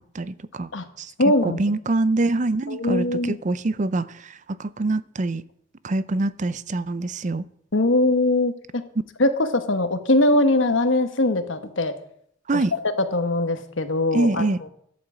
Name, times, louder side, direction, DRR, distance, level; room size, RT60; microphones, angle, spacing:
voice 1, 0.1-0.7 1.0-1.1 1.4-5.4 5.8-7.4 12.5-12.7 14.1-14.6, right 2 dB, 40° right, 0.5 m, -25 dB
voice 2, 1.2-1.6 2.7-3.4 7.7-8.5 9.2-11.9 12.5-12.6 13.1-14.5, left 2 dB, 65° left, 1.3 m, -21 dB
12.0 x 8.6 x 7.3 m
head